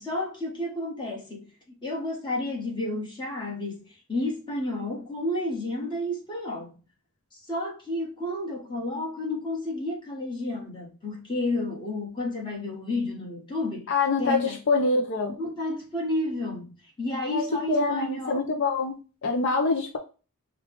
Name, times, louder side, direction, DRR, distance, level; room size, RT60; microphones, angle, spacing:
voice 1, 0.0-1.5 1.8-6.8 7.3-13.9 14.2-14.6 15.3-16.7 17.0-18.4, left 2 dB, 20° left, 1.6 m, -31 dB
voice 2, 13.9-15.3 17.3-20.0, left 3 dB, 55° left, 0.6 m, -25 dB
4.6 x 2.4 x 3.6 m
head